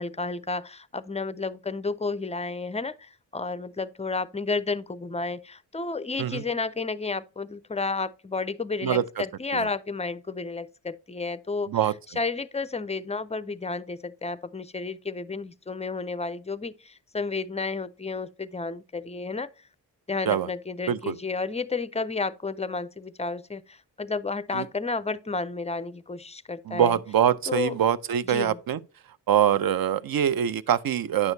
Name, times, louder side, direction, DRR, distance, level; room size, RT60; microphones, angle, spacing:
voice 1, 0.0-11.7 12.2-19.5 20.1-27.0 27.5-27.8 28.2-28.6, left 3 dB, 15° left, 0.4 m, -31 dB
voice 2, 8.8-9.2 9.5-9.7 11.7-11.9 20.3-20.5 20.9-21.1 24.5-24.7 26.7-28.8 29.3-31.3, right 9 dB, 60° right, 0.6 m, -24 dB
9.7 x 6.3 x 2.7 m
cardioid pair, 80°, 41 cm